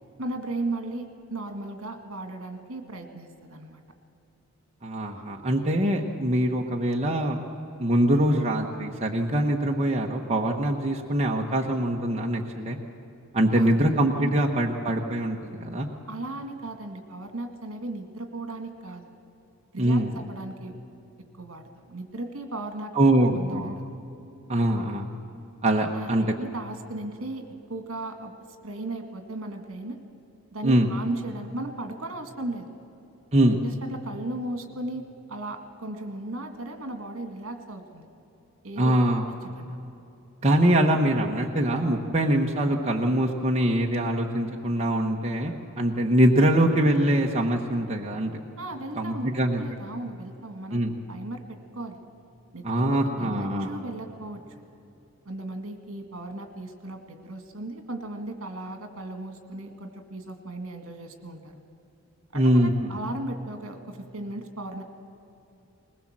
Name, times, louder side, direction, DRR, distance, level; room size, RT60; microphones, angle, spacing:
voice 1, 0.2-3.8 13.6-13.8 14.2-14.3 16.1-19.2 19.7-20.8 21.4-22.9 23.3-23.8 25.9-28.3 28.6-30.0 30.5-32.7 33.6-38.1 38.6-39.2 39.6-39.8 48.6-50.8 51.1-52.0 52.5-54.4 55.3-61.5 62.3-64.8, right 2 dB, 65° right, 6 dB, 2.1 m, -36 dB
voice 2, 4.8-7.4 7.8-12.8 13.3-15.9 19.8-20.1 22.9-23.8 24.5-25.1 25.6-26.2 30.6-30.9 33.3-33.6 38.8-39.2 40.4-48.3 49.0-49.6 50.7-50.9 52.6-53.7 62.3-62.9, right 1 dB, 30° right, 0 dB, 1.1 m, -23 dB
20.5 x 20.0 x 7.5 m, 2.8 s
head